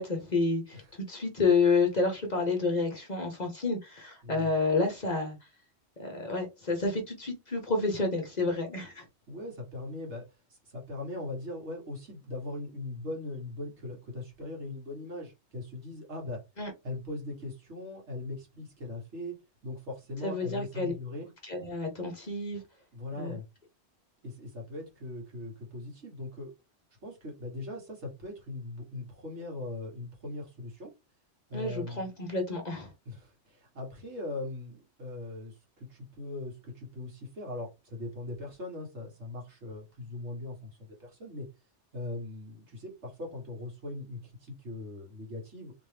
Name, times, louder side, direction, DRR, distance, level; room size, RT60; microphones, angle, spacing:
voice 1, 0.0-0.8 1.1-5.4 6.0-9.0 16.6-16.7 20.2-20.9 21.4-22.6 23.2-23.4 31.5-32.9, left 3 dB, 40° left, 0.9 m, -29 dB
voice 2, 9.3-10.2 10.5-16.4 16.8-19.3 19.6-21.3 22.9-23.4 24.2-26.5 27.0-30.9 31.5-32.1 33.1-41.5 41.9-45.7, left 2 dB, 70° right, 1.9 m, -40 dB
3.4 x 3.0 x 3.3 m
omnidirectional pair, 1.2 m